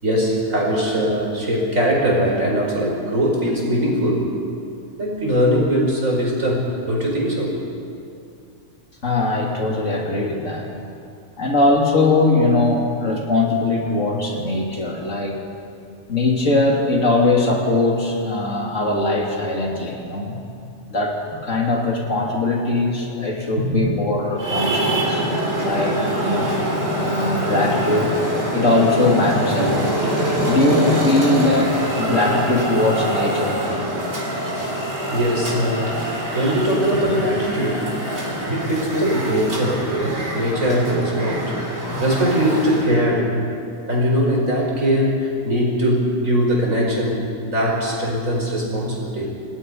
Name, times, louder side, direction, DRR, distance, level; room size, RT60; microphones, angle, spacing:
voice 1, 0.0-4.2 5.0-7.6 23.6-23.9 35.1-36.0 36.3-37.9 38.3-41.5 42.0-43.3 43.9-49.3, equal, 70° right, -2 dB, 5.6 m, -21 dB
voice 2, 9.0-10.7 11.4-15.4 16.1-20.4 20.9-25.2 25.6-26.5 27.0-28.2 28.5-30.0 30.4-33.9, left 2 dB, 65° left, -1 dB, 3.3 m, -21 dB
Traffic noise roadway noise, 24.4-43.0, right 1 dB, 50° right, 3.9 m, -24 dB
28.0 x 19.0 x 5.5 m, 2.5 s
omnidirectional pair, 1.4 m